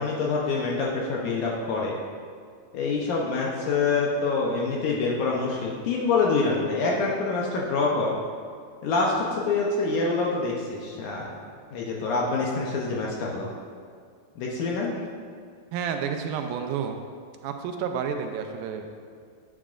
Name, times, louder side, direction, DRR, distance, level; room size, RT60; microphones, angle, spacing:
voice 1, 0.0-1.9 2.7-8.2 8.8-11.3 11.7-13.5 14.4-14.9, left 3 dB, 75° left, -2 dB, 2.0 m, -26 dB
voice 2, 15.7-17.0 17.4-18.9, right 7 dB, 85° right, 5 dB, 2.3 m, -30 dB
9.7 x 9.3 x 2.5 m, 2.1 s
omnidirectional pair, 4.2 m